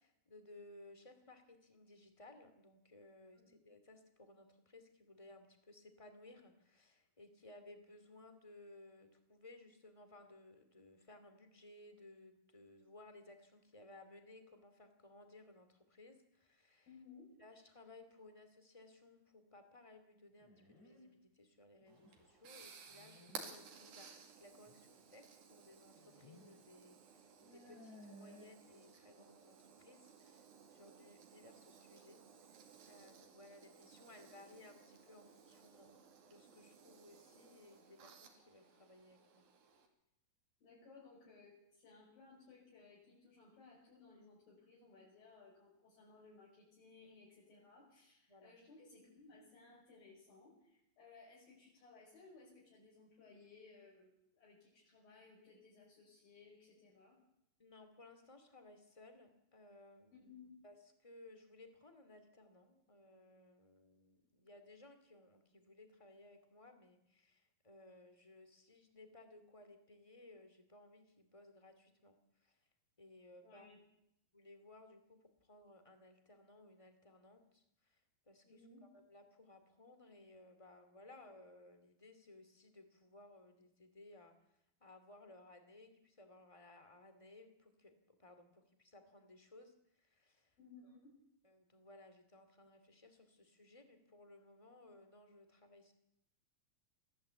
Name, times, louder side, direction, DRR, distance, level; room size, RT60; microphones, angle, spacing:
voice 1, 0.0-16.9 17.4-36.0 36.3-39.4 48.3-48.6 57.6-60.3 60.6-72.7 73.0-73.7 74.3-78.0 78.3-90.6 90.8-90.9 91.4-95.9, left 2 dB, 10° left, 7 dB, 2.0 m, -60 dB
voice 2, 16.9-17.3 40.6-57.2 60.1-60.6 73.4-73.8 78.4-78.8 90.6-91.1, left 4 dB, 70° left, -5 dB, 7.4 m, -61 dB
sound 1, 20.4-21.1 21.8-22.3 22.9-23.4 24.7-24.8 25.9-26.5 26.8-26.9 27.4-28.4, left 1 dB, 50° left, 6.1 m, -59 dB
sound 2, 21.9-39.9, right 6 dB, 75° right, 4.2 m, -58 dB
22.5 x 15.5 x 8.3 m, 0.80 s
omnidirectional pair, 4.2 m